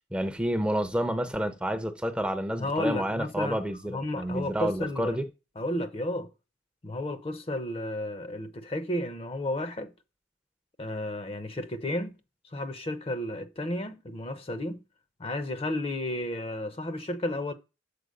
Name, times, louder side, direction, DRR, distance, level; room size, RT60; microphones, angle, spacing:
voice 1, 0.1-5.3, equal, 5° right, 0.6 m, -29 dB
voice 2, 2.6-3.6 3.9-5.2 5.6-6.3 6.8-9.9 10.8-12.2 12.5-14.8 15.2-17.5, left 1 dB, 30° left, 0.7 m, -32 dB
6.8 x 4.4 x 6.4 m
head